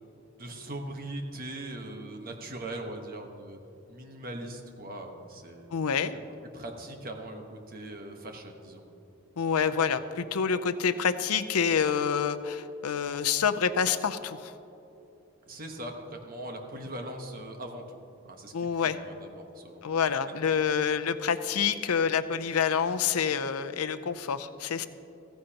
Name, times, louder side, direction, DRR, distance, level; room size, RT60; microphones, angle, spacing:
voice 1, 0.4-3.6 3.9-5.7 6.5-8.8 9.5-9.8 15.5-18.0 18.2-19.9, right 1 dB, 40° right, 3 dB, 1.2 m, -40 dB
voice 2, 5.7-6.1 9.4-14.5 18.5-19.0 19.8-24.9, left 6 dB, 90° left, 11 dB, 0.6 m, -27 dB
15.5 x 15.0 x 2.9 m, 2.9 s
head